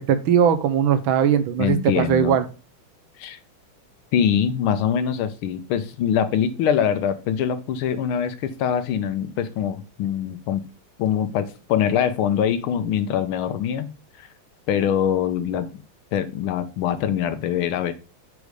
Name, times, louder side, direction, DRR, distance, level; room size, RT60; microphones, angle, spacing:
voice 1, 0.1-2.5, right 8 dB, 75° right, 10 dB, 1.4 m, -19 dB
voice 2, 1.6-2.4 3.2-3.4 4.1-10.6 11.0-13.9 14.2-14.3 14.7-15.7 16.1-17.9, left 9 dB, 80° left, 11 dB, 1.5 m, -23 dB
5.3 x 4.9 x 4.7 m, 0.33 s
omnidirectional pair, 2.3 m